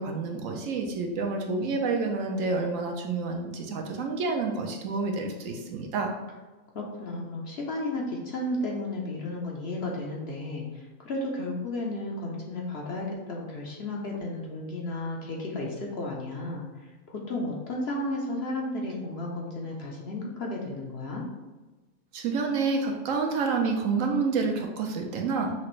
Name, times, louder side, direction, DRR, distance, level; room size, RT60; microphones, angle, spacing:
voice 1, 0.0-6.1 22.1-25.5, right 4 dB, 70° right, 2 dB, 0.9 m, -28 dB
voice 2, 6.7-21.2, left 2 dB, 55° left, -2 dB, 0.8 m, -33 dB
5.8 x 2.5 x 3.1 m, 1.2 s
omnidirectional pair, 1.5 m